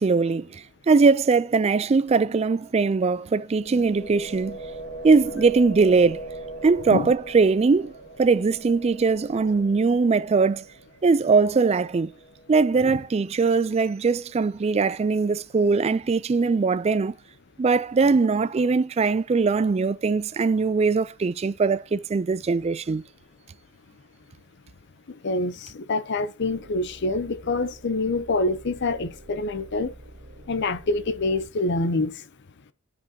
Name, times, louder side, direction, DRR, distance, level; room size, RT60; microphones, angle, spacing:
voice 1, 0.0-4.6 5.0-6.2 6.6-7.9 8.2-10.7 11.0-12.1 12.5-17.2 17.6-23.0, right 4 dB, 30° right, 0.3 m, -21 dB
sound 1, 3.5-13.4, right 2 dB, 35° left, 2.3 m, -40 dB
voice 2, 25.2-29.9 30.5-32.1, left 2 dB, 55° left, 0.6 m, -26 dB
sound 2, 26.4-31.5, right 1 dB, 65° right, 2.5 m, -48 dB
11.5 x 5.2 x 2.7 m
head